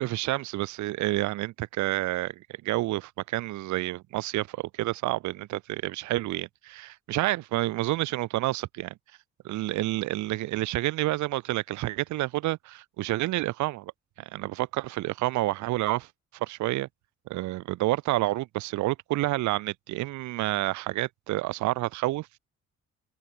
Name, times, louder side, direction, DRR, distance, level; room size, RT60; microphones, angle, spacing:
voice 1, 0.0-8.9 9.4-13.9 14.2-16.1 16.3-16.9 17.3-22.3, right 17 dB, 70° right, 0.6 m, -29 dB
open air
cardioid pair, 135°, 30 cm